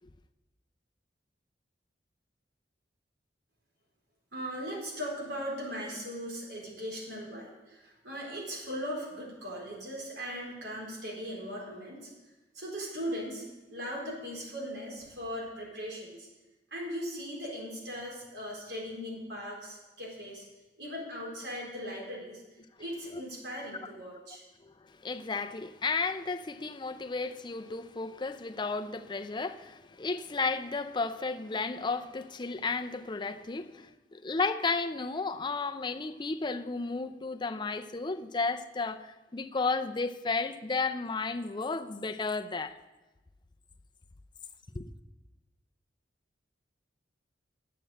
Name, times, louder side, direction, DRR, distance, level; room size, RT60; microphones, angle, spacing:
voice 1, 4.3-12.1 12.5-13.4 13.7-16.3 16.7-20.5 20.8-22.4 22.8-24.4, equal, 75° right, 4.1 m, -39 dB
voice 2, 24.6-42.8 44.7-44.9, left 4 dB, 25° left, 0.5 m, -33 dB
9.8 x 7.6 x 7.7 m
head